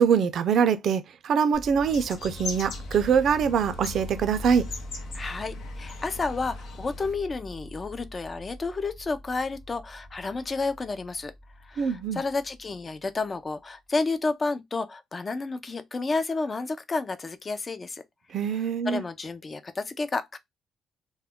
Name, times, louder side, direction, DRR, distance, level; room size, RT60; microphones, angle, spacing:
voice 1, 0.0-4.7 11.8-12.2 18.3-19.0, right 7 dB, 65° right, 0.4 m, -23 dB
sound 1, 1.5-13.5, left 1 dB, 15° left, 0.9 m, -42 dB
sound 2, 1.9-7.1, left 4 dB, 75° left, 0.6 m, -41 dB
voice 2, 5.1-11.3 11.6-18.0 18.5-20.4, left 3 dB, 30° left, 0.4 m, -31 dB
2.3 x 2.1 x 3.4 m
cardioid pair, 90°, 0 cm